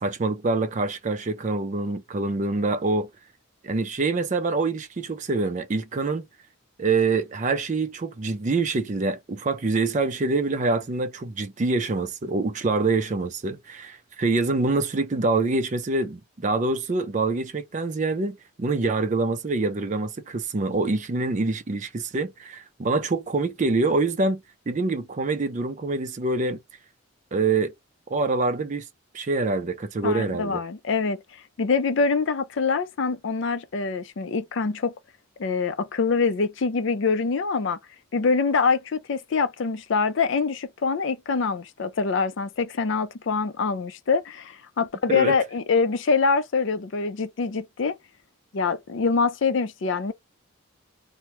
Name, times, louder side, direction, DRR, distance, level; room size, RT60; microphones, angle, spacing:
voice 1, 0.0-3.1 3.6-6.3 6.8-26.6 27.3-27.7 28.1-28.9 29.1-30.6 45.1-45.3, right 3 dB, 35° right, 0.4 m, -25 dB
voice 2, 30.0-31.2 31.6-34.9 35.4-37.8 38.1-48.0 48.5-50.1, left 4 dB, 55° left, 0.4 m, -24 dB
2.9 x 2.1 x 3.0 m
head